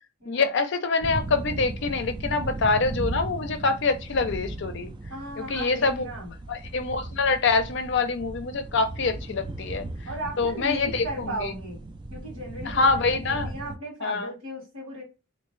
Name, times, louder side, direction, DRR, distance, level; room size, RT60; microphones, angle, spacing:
voice 1, 0.3-4.9 5.4-6.1 6.5-9.8 10.4-11.5 12.7-13.5 14.0-14.3, left 4 dB, 55° left, 0.5 m, -25 dB
sound 1, 1.0-13.8, right 2 dB, 20° right, 0.3 m, -37 dB
voice 2, 5.1-6.3 10.0-11.8 12.1-15.0, right 1 dB, 75° right, 1.5 m, -36 dB
3.5 x 2.6 x 3.1 m
head